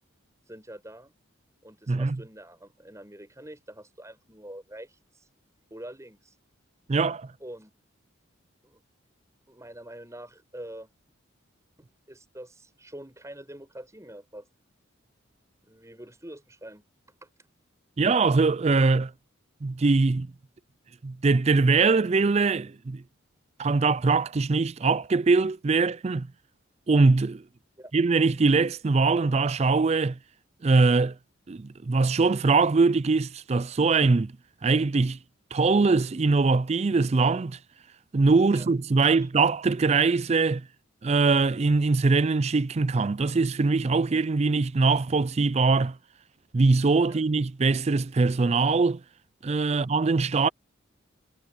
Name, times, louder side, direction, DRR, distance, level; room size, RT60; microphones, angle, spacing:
voice 1, 0.5-1.1 1.6-5.3 5.7-6.4 7.4-7.7 8.6-8.8 9.5-10.9 12.1-14.5 15.7-16.8 17.2-17.3 27.8-27.9 38.5-38.7 39.0-39.3 47.1-47.2, right 1 dB, 15° right, 7.6 m, -45 dB
voice 2, 6.9-7.3 18.0-19.1 19.6-20.3 21.0-23.0 23.6-26.3 26.9-27.4 27.9-30.2 30.6-31.1 31.5-34.3 34.6-35.2 35.5-37.6 38.1-40.6 41.0-46.0 46.5-49.0 49.4-50.5, right 4 dB, 30° right, 0.4 m, -22 dB
head